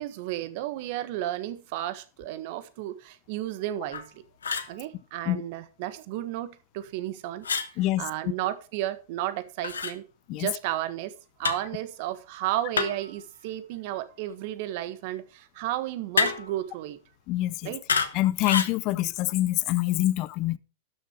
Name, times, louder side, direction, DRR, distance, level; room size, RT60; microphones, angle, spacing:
voice 1, 0.0-4.2 4.7-7.4 8.0-10.0 10.3-11.1 11.4-17.0 17.6-17.8, right 13 dB, 60° right, 1.4 m, -33 dB
sound 1, 3.9-4.1 4.4-4.7 7.4-7.7 9.6-9.9 11.4-11.7 12.7-13.1 16.2-16.6 17.9-18.1 18.4-18.8, left 5 dB, 85° left, 1.3 m, -27 dB
voice 2, 7.8-8.1 10.3-10.5 17.3-17.7 18.1-20.6, left 15 dB, 50° left, 0.6 m, -25 dB
12.5 x 6.4 x 4.7 m
hypercardioid pair, 100°, 0 cm